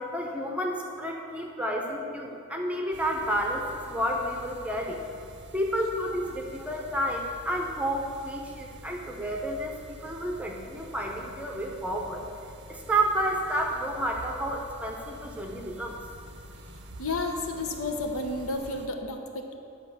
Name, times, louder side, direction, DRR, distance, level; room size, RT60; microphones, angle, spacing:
voice 1, 0.0-5.0 5.5-12.2 12.7-16.0, right 1 dB, 5° right, 1 dB, 0.8 m, -30 dB
sound 1, 2.9-18.9, right 1 dB, 50° right, 0.6 m, -47 dB
voice 2, 17.0-19.5, left 2 dB, 65° left, 3 dB, 1.0 m, -31 dB
11.0 x 4.9 x 7.1 m, 2.6 s
head